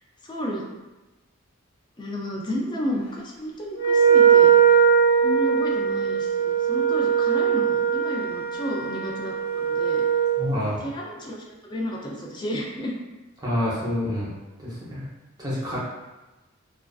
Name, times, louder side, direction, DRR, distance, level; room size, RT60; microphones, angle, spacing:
voice 1, 0.2-0.6 2.0-4.5 5.2-10.0 10.5-13.0, equal, 20° left, -1 dB, 0.4 m, -32 dB
Wind instrument woodwind instrument, 3.7-10.4, right 7 dB, 40° left, 0.9 m, -20 dB
voice 2, 10.4-10.9 13.4-14.3 14.6-15.1 15.4-15.8, left 1 dB, 20° right, -7 dB, 0.7 m, -27 dB
2.4 x 2.3 x 2.3 m, 1.1 s
head